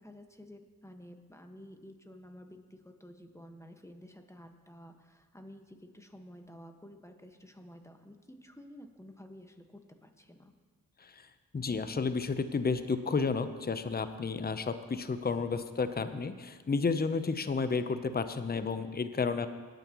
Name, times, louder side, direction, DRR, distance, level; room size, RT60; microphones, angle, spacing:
voice 1, 0.0-10.5, equal, 5° left, 5 dB, 1.5 m, -52 dB
voice 2, 11.0-19.5, left 4 dB, 25° left, 10 dB, 0.8 m, -32 dB
19.0 x 9.2 x 3.1 m, 1.5 s
supercardioid pair, 40°, 38 cm